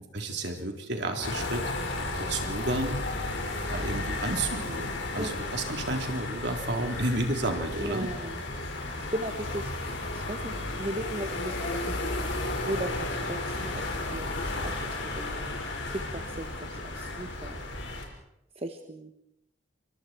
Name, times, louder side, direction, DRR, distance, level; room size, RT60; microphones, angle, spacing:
voice 1, 0.1-1.7 2.2-3.0 3.6-8.1, right 2 dB, 60° right, 3 dB, 3.8 m, -31 dB
sound 1, 1.2-18.1, left 2 dB, 65° left, 5.4 m, -33 dB
voice 2, 7.8-8.4 9.0-12.2 12.7-15.6 15.9-17.6 18.5-19.1, right 1 dB, 30° right, 5 dB, 1.4 m, -37 dB
28.5 x 24.5 x 4.6 m, 0.80 s
head